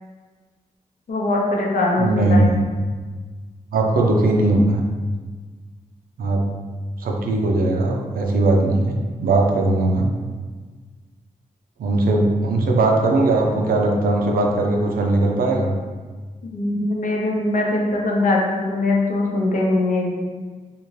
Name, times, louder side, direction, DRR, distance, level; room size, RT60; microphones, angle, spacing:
voice 1, 1.1-2.5 16.5-20.2, left 2 dB, 65° left, -1 dB, 0.6 m, -21 dB
voice 2, 2.0-2.6 3.7-4.8 6.2-6.5 7.0-9.0 9.2-10.1 11.8-15.8, right 2 dB, 85° right, 1 dB, 0.5 m, -19 dB
2.6 x 2.5 x 3.1 m, 1.4 s
wide cardioid pair, 110°, 15 cm